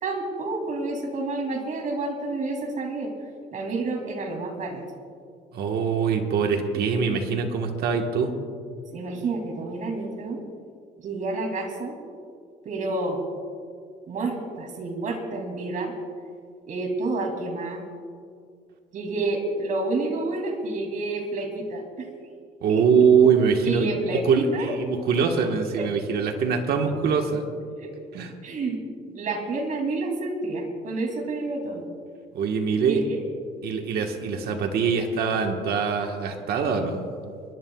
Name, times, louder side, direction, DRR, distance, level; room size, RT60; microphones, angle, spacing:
voice 1, 0.0-3.1 3.5-4.8 8.9-10.4 11.0-12.0 12.6-13.2 14.1-15.9 16.7-17.8 18.9-22.1 22.7-22.8 23.6-24.7 25.8-25.9 27.8-27.9 28.4-28.8 29.1-31.8 32.8-33.2, right 2 dB, 50° right, 2 dB, 2.7 m, -29 dB
voice 2, 5.5-8.3 22.6-27.4 28.1-28.3 32.3-33.0 33.6-37.1, right 6 dB, 70° right, 3 dB, 1.4 m, -23 dB
29.0 x 11.0 x 2.3 m, 2.2 s
cardioid pair, 110°, 17 cm